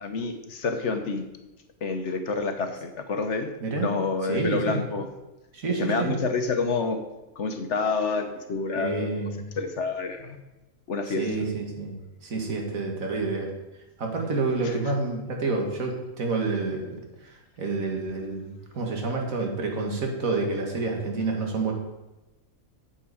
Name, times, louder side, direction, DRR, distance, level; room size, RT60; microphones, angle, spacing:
voice 1, 0.0-1.3 1.8-5.1 5.8-7.0 7.4-9.3 9.6-10.4 10.9-11.3 14.6-14.8, left 4 dB, 60° left, 7 dB, 1.2 m, -28 dB
voice 2, 4.3-4.8 5.5-6.2 8.8-9.5 11.2-13.5 14.0-21.7, right 3 dB, 80° right, 1 dB, 2.2 m, -29 dB
8.5 x 8.0 x 4.9 m, 1.0 s
omnidirectional pair, 1.4 m